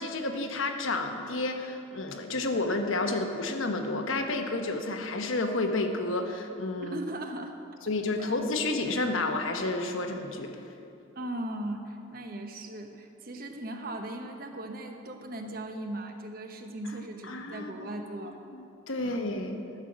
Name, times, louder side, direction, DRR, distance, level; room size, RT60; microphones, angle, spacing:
voice 1, 0.0-7.0 7.9-10.5 17.3-18.0 18.2-19.6, left 2 dB, 75° left, 5 dB, 1.1 m, -31 dB
voice 2, 6.8-7.6 11.1-18.4 19.0-19.3, right 1 dB, 45° right, 4 dB, 1.0 m, -38 dB
12.5 x 6.4 x 7.3 m, 2.8 s
head